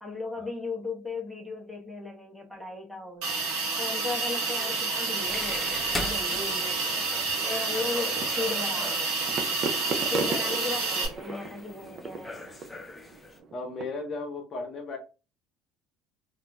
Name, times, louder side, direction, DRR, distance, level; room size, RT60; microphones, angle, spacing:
voice 1, 0.0-3.4 3.8-7.1 7.4-9.3 9.6-12.5, left 3 dB, 5° right, 1.1 m, -36 dB
Hiss, 3.2-11.1, right 4 dB, 75° right, 1.0 m, -29 dB
sound 1, 5.2-13.4, left 2 dB, 15° left, 0.7 m, -41 dB
sound 2, 8.1-13.8, right 4 dB, 50° right, 0.5 m, -37 dB
voice 2, 13.5-15.0, left 3 dB, 45° left, 0.8 m, -35 dB
3.6 x 2.5 x 2.3 m
hypercardioid pair, 70°, 0 cm